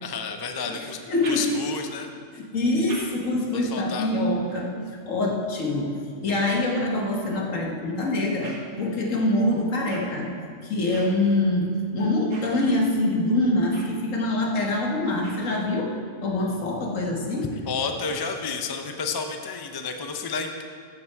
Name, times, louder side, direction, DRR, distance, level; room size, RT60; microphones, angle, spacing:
voice 1, 0.0-1.0 1.3-2.1 3.5-4.1 17.5-20.6, left 5 dB, 40° left, 5 dB, 0.3 m, -31 dB
voice 2, 0.8-1.5 2.3-4.7 5.1-8.5 8.8-10.3 10.6-16.0 16.2-17.5, left 2 dB, 65° left, 0 dB, 1.6 m, -25 dB
sound 1, 0.9-1.9 2.5-7.1 7.7-16.0, right 2 dB, 85° right, 1.9 m, -47 dB
13.5 x 6.1 x 4.5 m, 2.2 s
omnidirectional pair, 1.5 m